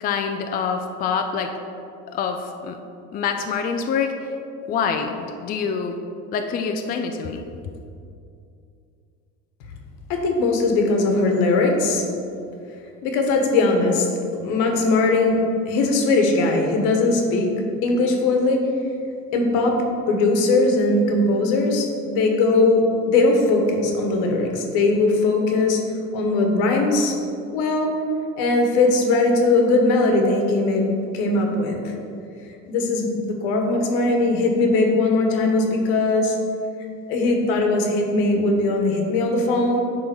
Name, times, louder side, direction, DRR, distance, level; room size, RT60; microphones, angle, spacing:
voice 1, 0.0-1.5 2.1-2.8 3.1-4.1 4.7-6.0 6.3-7.4, left 6 dB, 30° left, 5 dB, 0.4 m, -25 dB
voice 2, 10.1-12.0 13.0-14.1 14.3-15.4 15.7-17.5 17.8-18.6 19.3-19.8 20.1-22.8 23.1-25.8 26.1-27.1 27.5-27.9 28.4-30.8 31.1-31.9 32.7-36.4 37.1-39.8, left 2 dB, 80° left, 3 dB, 1.4 m, -20 dB
9.4 x 3.8 x 6.1 m, 2.5 s
cardioid pair, 155°, 31 cm